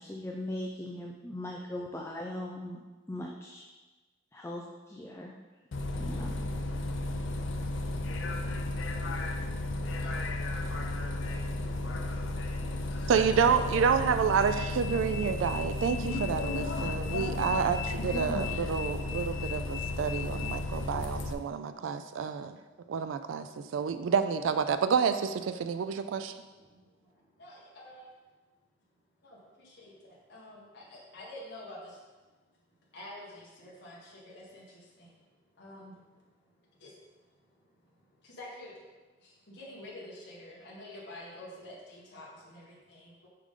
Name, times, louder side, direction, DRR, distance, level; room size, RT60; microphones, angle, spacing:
voice 1, 0.0-2.8 3.1-3.6 4.3-5.4 6.0-6.4, left 1 dB, 15° left, 0 dB, 0.4 m, -39 dB
Bus, 5.7-21.3, left 2 dB, 80° left, 0.5 m, -33 dB
voice 2, 9.7-10.2 12.9-13.1 13.6-14.0 18.0-18.4 21.7-22.0 22.3-24.1 25.8-28.1 29.2-32.0 32.7-35.1 35.5-38.8 39.2-43.3, left 1 dB, 65° left, -5 dB, 1.6 m, -50 dB
voice 3, 13.1-22.6 22.9-26.3, right 6 dB, 90° right, 10 dB, 0.3 m, -29 dB
6.6 x 5.1 x 3.7 m, 1.3 s
head